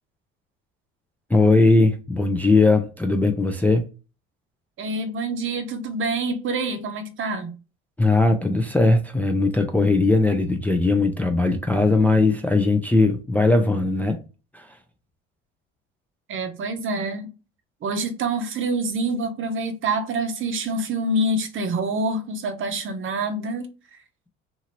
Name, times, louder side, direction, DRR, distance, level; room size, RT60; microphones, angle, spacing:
voice 1, 1.3-3.9 8.0-14.2 14.5-14.7, left 2 dB, 5° left, 0.4 m, -19 dB
voice 2, 4.8-7.5 16.3-17.3 17.8-23.7, right 2 dB, 45° right, 0.7 m, -26 dB
2.8 x 2.5 x 2.8 m
supercardioid pair, 85°, 30 cm